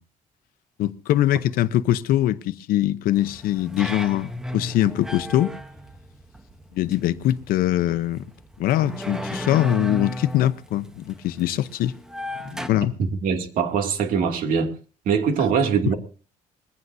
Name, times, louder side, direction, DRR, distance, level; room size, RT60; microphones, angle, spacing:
voice 1, 0.8-5.5 6.7-8.2 8.6-11.9 12.5-12.9, left 13 dB, 80° left, 0.8 m, -22 dB
sound 1, 3.1-12.7, equal, 5° right, 0.9 m, -35 dB
voice 2, 13.0-14.7 15.1-16.0, right 6 dB, 70° right, 2.6 m, -22 dB
21.5 x 15.5 x 2.7 m
cardioid pair, 165°, 15 cm